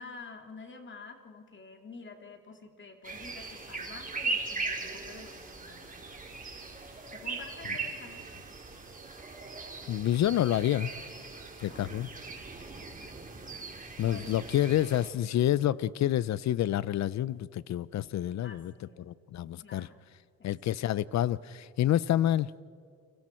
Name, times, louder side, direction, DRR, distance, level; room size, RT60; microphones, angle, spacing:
voice 1, 0.0-6.0 7.1-8.3 11.7-11.9 12.7-13.2 13.8-14.3 18.4-19.1 19.6-20.0 20.4-20.8, left 4 dB, 40° left, 2.7 m, -49 dB
sound 1, 3.0-15.1, right 4 dB, 25° right, 3.5 m, -39 dB
voice 2, 9.9-10.9 11.6-12.1 14.0-18.7 19.0-19.9 20.4-22.5, left 12 dB, 65° left, 0.7 m, -28 dB
29.5 x 25.5 x 4.5 m
cardioid pair, 90°, 30 cm